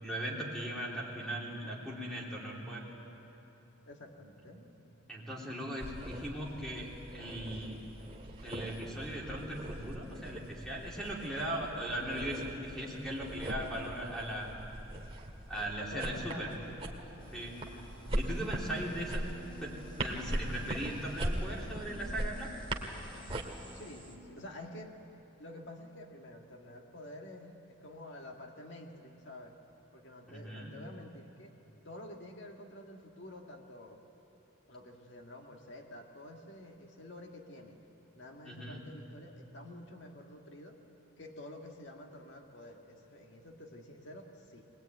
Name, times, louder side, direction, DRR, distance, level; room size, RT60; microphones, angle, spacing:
voice 1, 0.0-2.8 5.1-7.8 8.4-14.5 15.5-16.5 17.3-17.6 18.1-19.3 19.6-22.6 30.3-30.8 38.4-38.8, right 1 dB, 5° left, -4 dB, 3.5 m, -39 dB
voice 2, 3.9-4.6 15.8-16.8 23.7-25.0 25.4-29.6 29.9-31.5 31.8-34.0 34.7-37.8 38.1-40.8 41.2-44.6, left 1 dB, 60° left, 2 dB, 1.9 m, -49 dB
sound 1, 5.8-23.4, right 1 dB, 25° right, 2.0 m, -40 dB
sound 2, 17.2-24.2, equal, 25° left, 2.9 m, -53 dB
21.5 x 21.0 x 9.3 m, 2.9 s
head